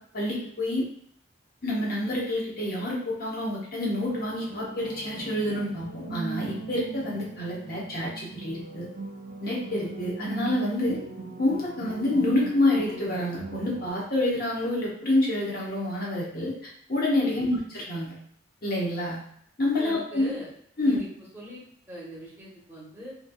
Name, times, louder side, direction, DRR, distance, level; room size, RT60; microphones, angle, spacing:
voice 1, 0.1-0.8 1.6-8.9 9.4-11.0 11.4-18.1 18.6-19.2 19.6-20.3 20.8-21.0, left 1 dB, 50° left, -4 dB, 0.8 m, -27 dB
sound 1, 4.1-13.9, right 3 dB, 40° right, 0.3 m, -39 dB
voice 2, 19.8-20.5 20.8-21.1 21.3-21.6 21.9-23.1, equal, 10° right, -5 dB, 0.7 m, -41 dB
3.0 x 2.5 x 2.3 m, 0.67 s
head